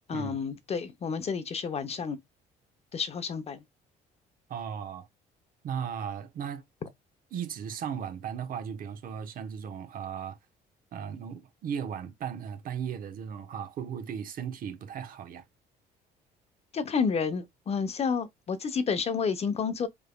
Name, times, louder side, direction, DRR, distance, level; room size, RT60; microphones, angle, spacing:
voice 1, 0.1-2.2 2.9-3.6 16.7-19.9, left 5 dB, 40° left, 0.7 m, -30 dB
voice 2, 4.5-5.1 5.6-6.6 7.3-10.4 10.9-15.4, right 8 dB, 55° right, 1.0 m, -36 dB
3.6 x 3.5 x 2.2 m
cardioid pair, 110°, 17 cm